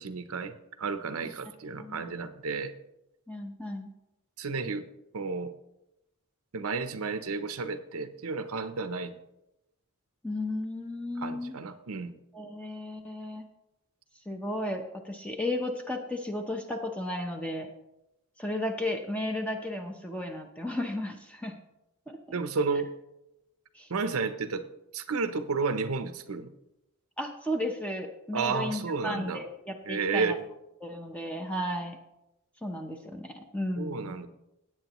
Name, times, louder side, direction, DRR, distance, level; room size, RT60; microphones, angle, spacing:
voice 1, 0.0-2.7 4.4-4.9 5.1-5.5 6.5-9.1 11.2-12.1 22.3-22.9 23.9-24.6 24.9-26.5 28.3-29.4 29.8-30.5 33.8-34.3, right 4 dB, 75° right, 10 dB, 0.7 m, -32 dB
voice 2, 3.3-3.9 10.2-11.5 12.3-13.4 14.3-17.7 18.4-21.6 22.1-22.2 23.7-23.9 27.2-30.4 30.8-32.0 32.6-34.1, left 1 dB, 5° left, 3 dB, 0.7 m, -34 dB
16.5 x 8.7 x 3.0 m, 0.89 s
head